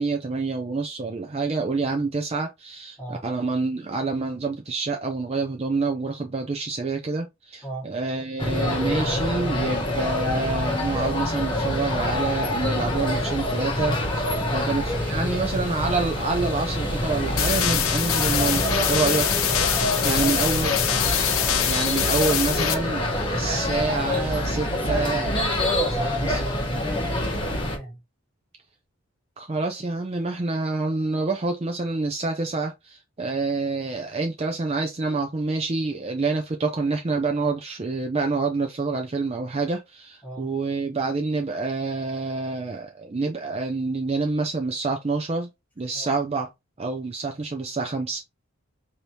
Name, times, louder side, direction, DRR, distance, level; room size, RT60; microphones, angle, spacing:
voice 1, 0.0-14.3 14.5-19.3 20.0-20.7 21.7-25.3 26.2-26.4 29.4-45.5 45.8-46.5 46.8-48.2, right 3 dB, 30° right, 0.4 m, -27 dB
sound 1, 8.4-27.8, left 1 dB, 20° left, 1.0 m, -26 dB
voice 2, 15.1-15.6 20.0-21.0 24.7-28.0 36.3-36.4 40.2-40.5 45.9-46.1, left 1 dB, 5° left, 1.4 m, -33 dB
sound 2, 17.4-22.7, left 9 dB, 80° left, 0.7 m, -24 dB
5.1 x 2.8 x 2.9 m
head